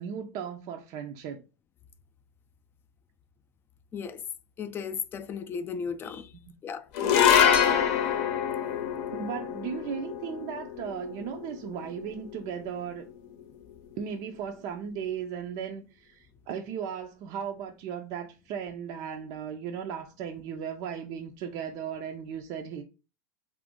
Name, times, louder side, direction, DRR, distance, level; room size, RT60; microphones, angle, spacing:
voice 1, 0.0-1.4 9.1-13.1 14.0-22.8, right 7 dB, 50° right, 0.5 m, -36 dB
voice 2, 4.6-6.3 6.6-6.8, left 6 dB, 25° left, 0.4 m, -35 dB
sound 1, 6.9-13.4, left 8 dB, 60° left, 0.7 m, -26 dB
2.6 x 2.5 x 3.6 m
hypercardioid pair, 115°, 9 cm